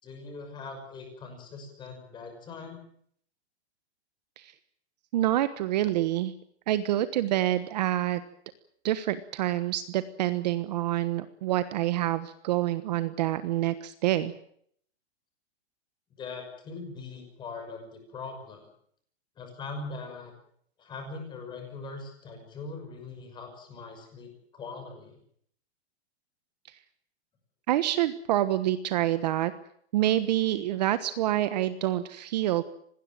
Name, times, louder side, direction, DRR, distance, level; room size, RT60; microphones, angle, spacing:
voice 1, 0.0-2.8 16.2-18.7 19.4-20.3 20.8-25.2, left 3 dB, 15° left, 5 dB, 5.9 m, -41 dB
voice 2, 5.1-6.3 6.7-8.2 8.8-14.3 27.7-29.5 29.9-32.6, right 13 dB, 40° right, 12 dB, 1.3 m, -27 dB
26.0 x 19.5 x 7.7 m, 0.65 s
supercardioid pair, 175°, 33 cm